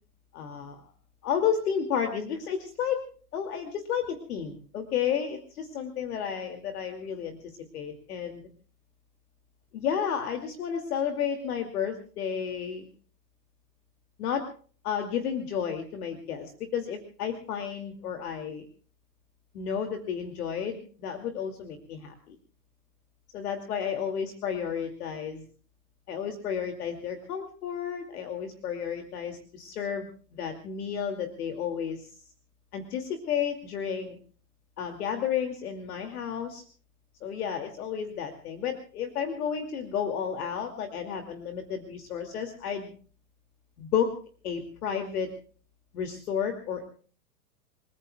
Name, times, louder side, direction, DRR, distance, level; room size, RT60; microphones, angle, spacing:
voice 1, 0.3-0.8 1.2-3.1 3.3-8.4 9.7-12.9 14.2-14.5 14.8-18.7 19.5-22.4 23.3-25.4 26.1-32.1 32.7-34.2 34.8-36.6 37.2-42.9 43.8-44.1 44.4-45.3 45.9-46.9, left 8 dB, 65° left, 5 dB, 2.6 m, -32 dB
29.5 x 19.5 x 2.3 m, 0.43 s
hypercardioid pair, 105°, 48 cm